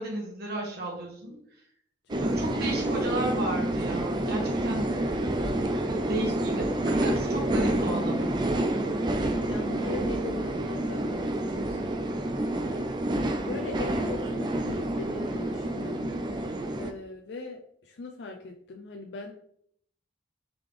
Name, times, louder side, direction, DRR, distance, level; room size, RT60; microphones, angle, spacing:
voice 1, 0.0-1.3 2.2-5.0 6.1-8.3, right 1 dB, 60° right, -1 dB, 1.2 m, -33 dB
voice 2, 2.1-2.8 8.4-9.0 9.5-13.1 13.4-16.1 16.7-19.3, left 3 dB, 70° left, 2 dB, 0.4 m, -41 dB
sound 1, 2.1-16.9, right 1 dB, 25° right, 0.3 m, -28 dB
3.8 x 3.3 x 3.3 m, 0.67 s
head